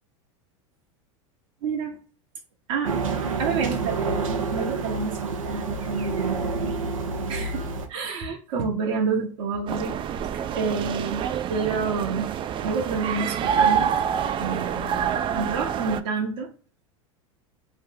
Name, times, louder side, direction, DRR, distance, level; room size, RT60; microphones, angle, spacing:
voice 1, 1.6-2.0 2.7-2.9 3.4-6.4 7.3-7.6 7.9-9.9 10.3-11.2 11.5-12.3 12.6-13.9 14.4-16.5, right 4 dB, 65° right, -1 dB, 1.0 m, -29 dB
sound 1, 2.8-7.9, right 4 dB, 90° right, 0.7 m, -28 dB
sound 2, 9.7-16.0, right 8 dB, 30° right, 0.4 m, -26 dB
3.0 x 2.1 x 3.6 m, 0.38 s
hypercardioid pair, 95°, 17 cm